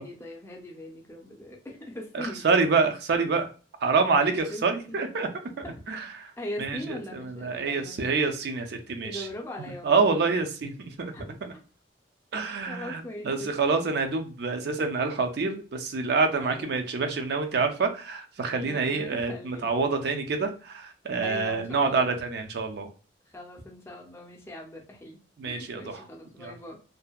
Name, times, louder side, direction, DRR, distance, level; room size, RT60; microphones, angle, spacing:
voice 1, 0.0-2.5 4.2-5.0 5.6-6.1 6.4-8.1 9.0-10.4 11.1-11.2 12.7-13.5 16.4-16.9 18.6-19.7 21.2-22.2 23.3-25.2 25.4-26.8, left 1 dB, 15° left, 0 dB, 0.5 m, -41 dB
voice 2, 2.1-3.5 3.8-6.3 6.6-9.3 9.6-11.1 12.3-22.9 25.4-26.0 26.4-26.5, right 4 dB, 65° right, 6 dB, 0.4 m, -27 dB
2.6 x 2.1 x 2.2 m, 0.36 s
head